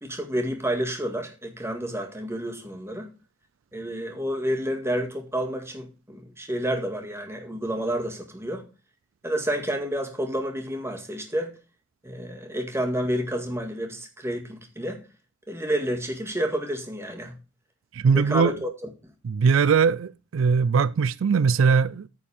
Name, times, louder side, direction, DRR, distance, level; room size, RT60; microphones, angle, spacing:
voice 1, 0.0-3.1 3.7-8.6 9.2-11.6 12.0-15.0 15.5-17.3 18.1-18.7, equal, 15° right, 1.9 m, -29 dB
voice 2, 17.9-18.6 19.2-22.1, right 5 dB, 80° right, 0.4 m, -21 dB
9.5 x 4.5 x 7.1 m
head